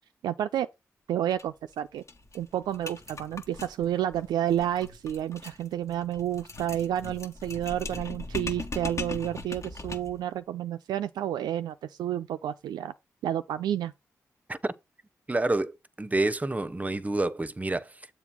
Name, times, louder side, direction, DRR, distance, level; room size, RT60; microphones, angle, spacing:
voice 1, 0.2-0.7 1.1-2.0 2.3-12.9 13.2-13.9, right 11 dB, 85° right, 0.4 m, -30 dB
sound 1, 1.3-1.4 1.7-1.8 2.1-10.2, left 3 dB, 45° left, 1.3 m, -39 dB
voice 2, 15.3-18.0, right 2 dB, 20° right, 0.8 m, -28 dB
7.3 x 3.3 x 6.0 m
supercardioid pair, 45°, 7 cm